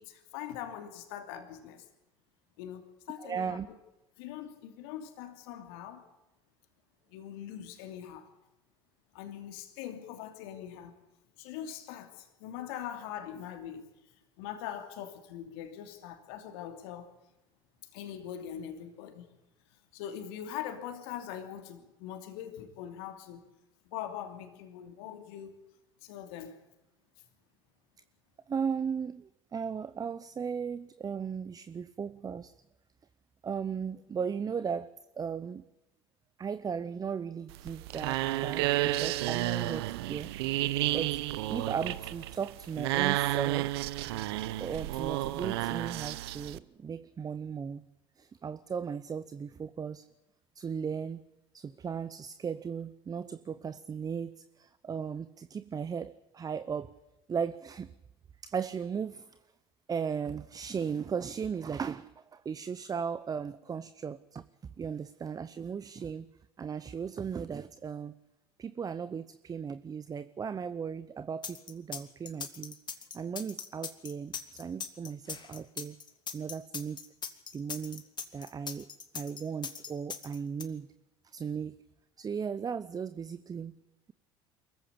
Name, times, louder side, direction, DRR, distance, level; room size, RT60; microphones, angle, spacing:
voice 1, 0.0-1.8 2.6-3.6 4.2-6.0 7.1-8.3 9.1-10.9 11.4-13.9 14.4-17.1 17.9-19.3 19.9-23.4 23.9-25.6 26.0-26.6, left 10 dB, 70° left, 7 dB, 2.8 m, -42 dB
voice 2, 3.2-3.7 28.5-32.5 33.4-35.6 36.4-40.3 40.9-41.2 41.5-43.7 44.6-47.8 48.2-50.1 50.5-51.2 51.5-56.9 57.3-57.9 58.4-59.4 59.9-66.3 66.6-68.2 68.6-72.8 73.1-76.0 76.3-77.0 77.5-78.0 78.3-78.9 79.1-80.9 81.3-81.8 82.2-83.7, right 6 dB, 30° right, 15 dB, 0.8 m, -36 dB
sound 1, 37.5-46.6, right 16 dB, 75° right, 0.8 m, -31 dB
sound 2, 71.4-80.6, left 7 dB, 35° left, 2.3 m, -40 dB
23.5 x 15.0 x 8.7 m, 0.96 s
hypercardioid pair, 75°, 13 cm